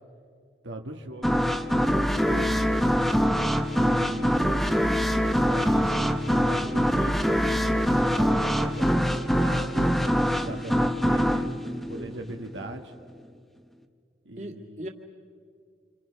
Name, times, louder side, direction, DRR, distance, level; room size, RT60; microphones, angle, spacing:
voice 1, 0.6-2.6 3.7-4.6 5.4-9.9 10.4-11.5 11.9-12.9 14.2-14.9, right 1 dB, 85° right, 3 dB, 1.4 m, -39 dB
sound 1, 1.2-12.7, equal, ahead, 0.8 m, -24 dB
voice 2, 11.9-12.2 14.4-14.9, equal, 40° right, 1 dB, 2.0 m, -40 dB
28.5 x 25.5 x 5.8 m, 2.2 s
head